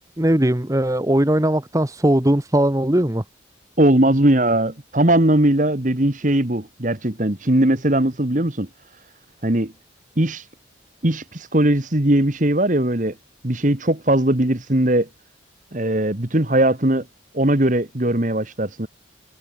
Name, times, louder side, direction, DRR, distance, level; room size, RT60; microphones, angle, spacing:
voice 1, 0.2-3.2, right 1 dB, 15° right, 1.1 m, -19 dB
voice 2, 3.8-8.7 9.4-9.7 10.2-10.5 11.0-13.2 13.4-15.1 15.7-17.1 17.3-18.9, right 1 dB, 40° right, 1.8 m, -19 dB
head